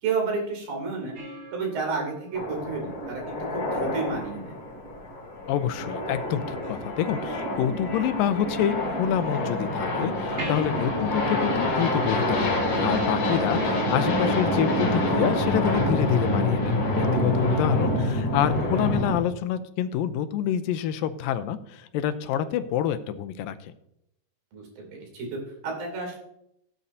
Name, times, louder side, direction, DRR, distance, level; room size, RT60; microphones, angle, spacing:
voice 1, 0.0-1.2 1.5-4.6 10.7-11.1 24.5-26.2, right 4 dB, 80° right, 1 dB, 4.7 m, -31 dB
sound 1, 1.1-3.8 6.6-7.6 10.4-13.3 16.4-16.5, right 1 dB, 45° right, 2.9 m, -43 dB
sound 2, 2.3-19.2, left 1 dB, 50° left, 4.7 m, -26 dB
voice 2, 5.5-23.7, left 10 dB, 85° left, 11 dB, 2.4 m, -27 dB
17.5 x 8.6 x 2.7 m, 0.77 s
omnidirectional pair, 4.0 m